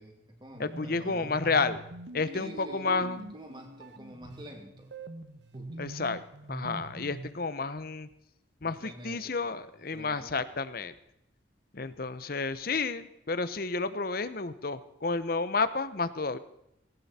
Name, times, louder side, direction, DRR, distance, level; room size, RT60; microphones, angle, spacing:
voice 1, 0.0-1.3 2.3-4.9 5.5-5.9 8.6-9.6 9.9-10.5, equal, 25° right, 3 dB, 2.6 m, -48 dB
sound 1, 0.5-7.4, right 1 dB, 60° right, 1.1 m, -44 dB
voice 2, 0.6-1.8 2.1-3.3 5.8-6.2 6.5-8.1 8.6-10.9 11.7-16.4, left 4 dB, 50° left, 14 dB, 0.9 m, -31 dB
18.5 x 17.0 x 4.3 m, 0.80 s
head